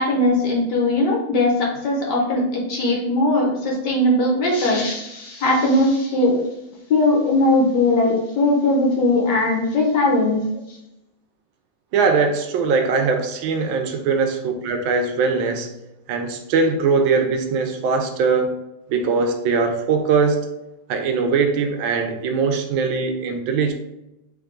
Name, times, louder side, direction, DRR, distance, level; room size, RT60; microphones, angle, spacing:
voice 1, 0.0-6.4 6.9-10.5, left 2 dB, 65° left, -1 dB, 1.3 m, -19 dB
voice 2, 11.9-15.7 16.1-18.6 18.9-20.4 20.9-23.7, right 4 dB, 75° right, 5 dB, 1.3 m, -21 dB
3.5 x 3.3 x 3.7 m, 0.90 s
omnidirectional pair, 2.3 m